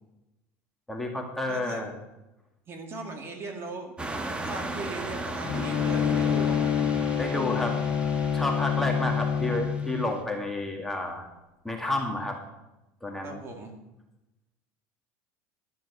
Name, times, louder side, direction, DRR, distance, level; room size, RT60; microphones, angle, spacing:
voice 1, 0.9-1.9 7.2-7.8 8.3-11.3 11.6-12.4 13.0-13.4, left 2 dB, 5° left, 1 dB, 2.1 m, -30 dB
voice 2, 1.5-1.9 2.7-3.9 4.4-6.7 13.2-13.7, right 3 dB, 35° right, 3 dB, 2.3 m, -38 dB
sound 1, 4.0-10.1, right 2 dB, 15° right, 1.3 m, -37 dB
Bowed string instrument, 5.4-10.1, left 7 dB, 45° left, 0.6 m, -27 dB
12.5 x 7.2 x 7.0 m, 0.95 s
supercardioid pair, 120°, 7 cm